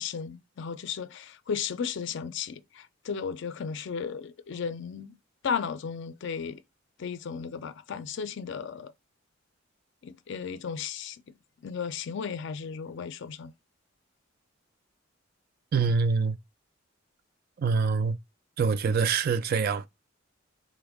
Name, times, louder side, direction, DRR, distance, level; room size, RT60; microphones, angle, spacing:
voice 1, 0.0-5.2 5.4-6.6 7.0-8.9 10.0-11.2 11.6-13.5, left 6 dB, 65° left, 0.4 m, -35 dB
voice 2, 15.7-16.4 17.6-18.2 18.6-19.9, right 5 dB, 50° right, 0.3 m, -25 dB
3.5 x 2.1 x 3.4 m
head